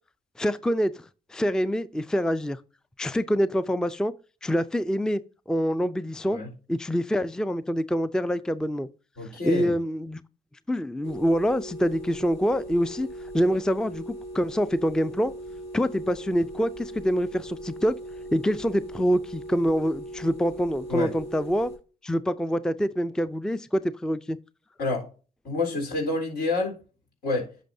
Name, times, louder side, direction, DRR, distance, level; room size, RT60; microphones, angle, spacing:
voice 1, 0.4-2.6 3.0-4.1 4.4-5.2 5.5-6.4 6.7-8.9 9.4-10.2 10.7-13.1 13.3-15.3 15.7-18.0 18.3-21.7 22.0-24.4, equal, 5° left, 0.4 m, -25 dB
voice 2, 9.2-9.7 20.9-21.1 24.8-25.1 25.4-26.8 27.2-27.5, left 2 dB, 75° left, 3.8 m, -28 dB
sound 1, 11.0-21.8, right 1 dB, 90° left, 2.7 m, -39 dB
10.0 x 6.2 x 2.7 m
supercardioid pair, 60°, 17 cm